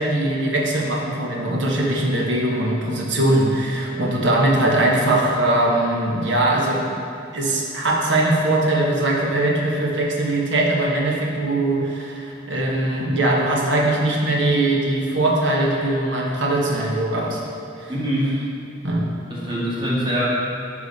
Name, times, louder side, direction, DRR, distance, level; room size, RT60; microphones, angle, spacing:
voice 1, 0.0-6.9 7.3-17.4 17.8-17.9 18.8-19.1, right 1 dB, 75° right, -2 dB, 1.2 m, -21 dB
voice 2, 17.9-18.3 19.3-20.2, equal, 25° right, -7 dB, 2.0 m, -23 dB
9.8 x 5.0 x 4.1 m, 2.5 s
head